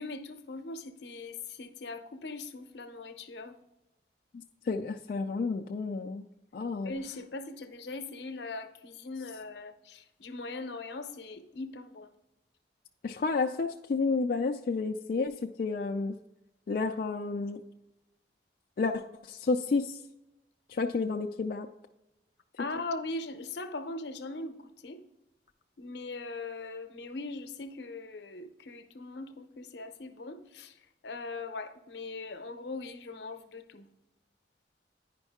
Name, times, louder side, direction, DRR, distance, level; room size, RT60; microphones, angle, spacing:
voice 1, 0.0-3.5 6.9-12.1 22.6-25.0 25.8-30.7 31.0-33.8, left 3 dB, 75° left, 0.7 m, -40 dB
voice 2, 4.3-6.3 6.5-6.9 13.0-16.1 16.7-17.6 18.8-20.0 20.7-21.7, left 4 dB, 50° left, 0.3 m, -31 dB
9.9 x 5.3 x 3.5 m
head